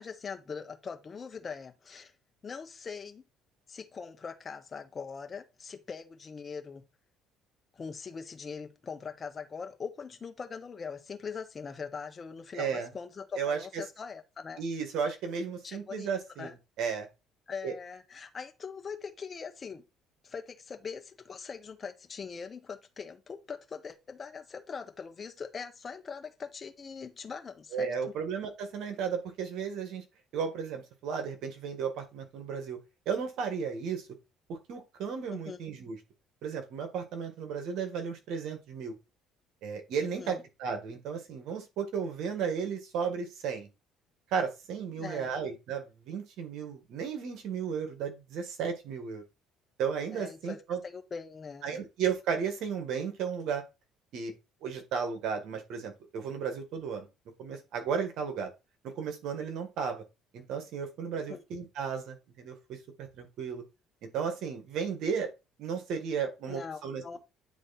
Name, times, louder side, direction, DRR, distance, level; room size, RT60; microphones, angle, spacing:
voice 1, 0.0-2.1 2.4-3.2 3.7-6.9 7.7-14.6 15.6-16.1 16.4-16.5 17.5-19.8 20.2-27.9 35.4-35.6 40.0-40.4 45.0-45.3 50.1-51.8 61.3-61.4 66.5-67.2, left 5 dB, 30° left, 1.3 m, -41 dB
voice 2, 12.5-12.9 13.4-13.8 14.6-17.1 17.6-17.7 27.7-30.0 30.3-32.8 33.1-34.1 34.5-36.0 36.4-39.0 39.6-43.7 44.3-49.2 49.8-50.8 51.6-53.6 54.1-54.3 54.6-57.1 57.4-58.5 58.8-60.0 60.3-63.6 64.0-65.3 65.6-67.2, right 6 dB, 70° right, 1.8 m, -34 dB
9.4 x 3.5 x 4.3 m
cardioid pair, 105°, 0 cm